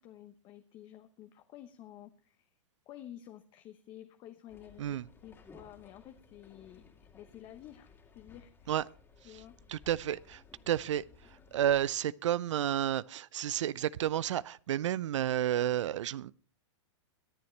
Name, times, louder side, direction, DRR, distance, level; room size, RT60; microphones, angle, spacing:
voice 1, 0.0-2.5 2.9-5.0 5.2-6.9 7.1-8.8 9.2-9.6, left 12 dB, 30° left, 0.9 m, -51 dB
sound 1, 4.5-11.9, left 4 dB, 15° left, 2.3 m, -58 dB
voice 2, 9.7-11.0 11.5-16.3, right 11 dB, 80° right, 0.5 m, -31 dB
23.0 x 7.7 x 3.2 m
hypercardioid pair, 135°, 16 cm